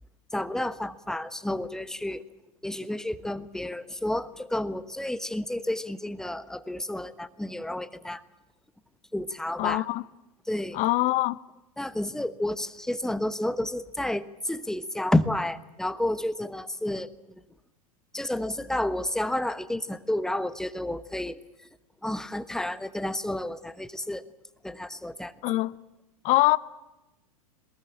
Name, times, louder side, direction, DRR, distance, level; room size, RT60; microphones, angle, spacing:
voice 1, 0.3-2.2 2.6-8.2 9.1-9.9 10.5-10.8 11.8-17.1 18.1-21.4 22.0-24.2 24.6-25.3, left 1 dB, 5° left, 1.2 m, -30 dB
voice 2, 9.6-10.0 10.7-11.4 25.4-25.7 26.2-26.6, left 19 dB, 40° left, 0.9 m, -23 dB
22.5 x 20.5 x 8.7 m
figure-of-eight pair, 95°, 19 cm